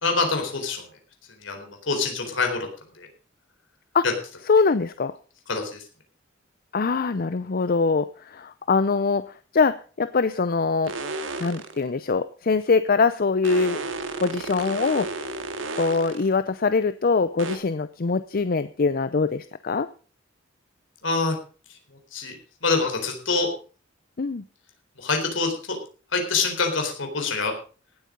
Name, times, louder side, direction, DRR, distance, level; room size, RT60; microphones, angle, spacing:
voice 1, 0.0-0.9 1.4-2.7 2.9-3.1 4.0-4.1 5.5-5.8 21.0-21.4 21.9-22.4 22.6-23.5 25.0-25.8 26.1-27.5, left 4 dB, 70° left, 4 dB, 4.0 m, -25 dB
voice 2, 4.5-5.1 6.7-9.2 9.5-10.9 11.4-13.8 14.2-15.1 15.8-19.9 24.2-24.4, left 4 dB, 50° left, 13 dB, 0.6 m, -23 dB
sound 1, 10.8-11.8 13.4-16.3 17.4-17.6, right 3 dB, 90° right, 2.0 m, -32 dB
17.5 x 8.5 x 5.2 m, 0.38 s
head